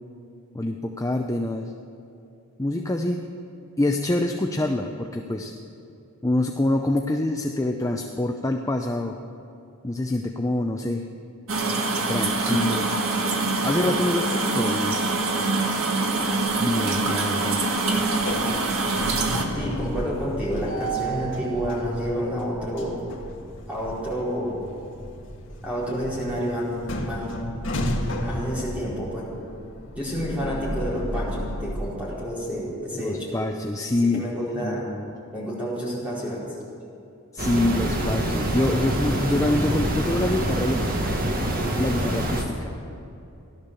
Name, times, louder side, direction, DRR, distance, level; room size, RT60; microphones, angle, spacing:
voice 1, 0.5-1.7 2.6-3.2 3.8-5.5 6.2-9.2 9.8-11.0 12.1-12.9 13.6-15.0 16.6-17.6 33.0-34.3 34.6-35.1 37.3-41.2 41.7-42.7, left 1 dB, 15° left, 3 dB, 0.6 m, -26 dB
sound 1, 11.5-19.5, right 3 dB, 70° right, 1.7 m, -24 dB
sound 2, 17.7-31.7, equal, 60° left, 1.7 m, -33 dB
voice 2, 19.5-23.0 23.7-24.6 25.6-26.7 27.0-27.3 28.2-29.3 29.9-33.3 34.0-34.9 35.3-36.5, equal, 5° right, -8 dB, 4.7 m, -29 dB
sound 3, 37.4-42.4, right 1 dB, 40° right, 1.6 m, -25 dB
16.0 x 12.0 x 7.0 m, 2.7 s
head